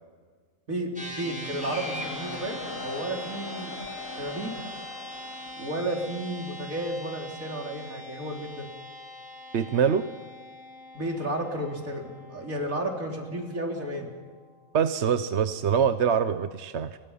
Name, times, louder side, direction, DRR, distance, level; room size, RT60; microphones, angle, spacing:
voice 1, 0.7-3.8 4.2-4.5 5.6-8.7 10.9-14.1, right 1 dB, 80° right, 1 dB, 4.1 m, -32 dB
sound 1, 1.0-14.5, left 1 dB, 5° right, 4.6 m, -42 dB
Cheering, 1.6-6.4, left 3 dB, 70° left, 2.6 m, -40 dB
voice 2, 9.5-10.0 14.7-17.0, right 7 dB, 60° right, 10 dB, 1.1 m, -24 dB
30.0 x 24.0 x 5.7 m, 1.5 s
omnidirectional pair, 1.4 m